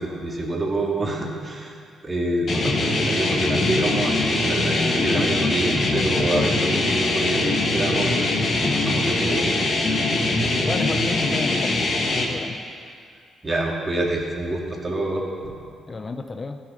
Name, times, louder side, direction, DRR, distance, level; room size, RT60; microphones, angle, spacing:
voice 1, 0.0-9.7 13.4-15.6, right 1 dB, 35° right, -1 dB, 2.4 m, -27 dB
sound 1, 2.5-12.3, left 2 dB, 55° left, 1.7 m, -22 dB
voice 2, 10.6-11.8 12.1-12.6 15.9-16.6, left 3 dB, 40° left, 6 dB, 0.7 m, -31 dB
15.0 x 6.5 x 5.8 m, 2.2 s
supercardioid pair, 55°, 0 cm